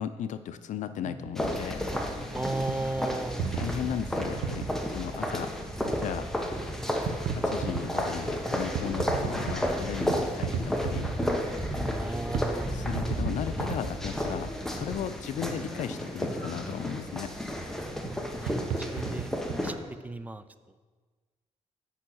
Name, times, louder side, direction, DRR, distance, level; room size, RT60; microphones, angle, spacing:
voice 1, 0.0-1.8 3.5-5.5 6.0-6.3 7.3-11.1 12.7-17.3, left 9 dB, 75° left, 11 dB, 0.5 m, -36 dB
sound 1, 1.0-1.4 1.9-2.0 2.7-2.8 3.4-4.7 5.9-6.0 6.4-6.5 7.1-7.8 8.6-9.6 10.1-11.4 12.0-12.1 12.3-12.5 12.8-13.9 14.2-14.3 16.1-16.4 18.1-18.2 18.4-19.6, right 8 dB, 90° right, 0.7 m, -34 dB
sound 2, 1.4-19.7, equal, 5° left, 1.1 m, -32 dB
voice 2, 2.3-3.4 11.9-12.9 18.4-19.3 19.6-19.7 20.0-20.4, right 2 dB, 10° right, 11 dB, 0.5 m, -35 dB
8.8 x 5.6 x 6.3 m, 1.4 s
cardioid pair, 100°, 13 cm